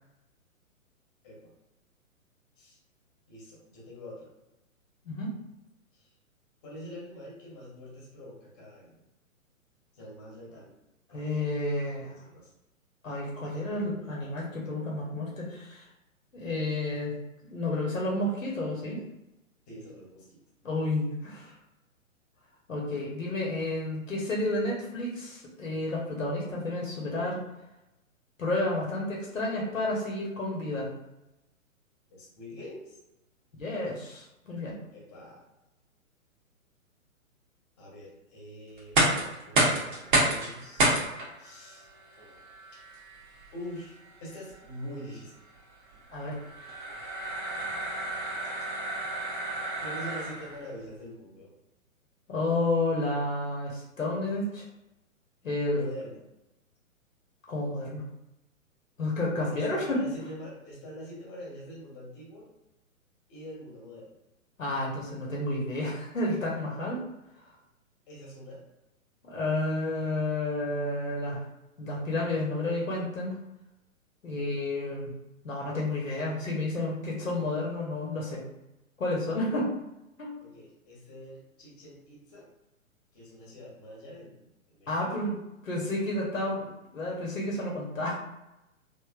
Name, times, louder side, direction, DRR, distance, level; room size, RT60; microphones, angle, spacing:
voice 1, 3.3-4.3 5.9-6.1 6.6-9.0 9.9-10.7 11.1-11.5 12.0-12.5 19.7-20.4 32.1-33.0 34.9-35.4 37.8-40.9 41.4-41.9 43.5-45.4 48.4-48.5 49.8-51.5 55.7-56.2 59.4-62.5 63.3-64.2 68.1-68.6 74.3-74.7 80.4-82.5 83.1-85.2, equal, 30° left, -4 dB, 1.3 m, -45 dB
voice 2, 11.1-12.1 13.0-15.8 16.3-17.1 17.5-19.0 20.6-21.5 22.7-27.4 28.4-30.9 33.6-34.8 46.1-46.4 52.3-54.6 55.4-55.8 57.5-58.0 59.0-60.0 64.6-67.0 69.2-71.4 71.8-73.4 74.2-75.1 75.4-78.4 79.0-79.7 80.2-80.3 84.9-85.4 85.6-88.2, left 2 dB, 65° left, -3 dB, 1.1 m, -31 dB
sound 1, 38.8-50.7, right 1 dB, 35° right, 0.8 m, -30 dB
3.2 x 2.8 x 2.4 m, 0.92 s
figure-of-eight pair, 120°, 42 cm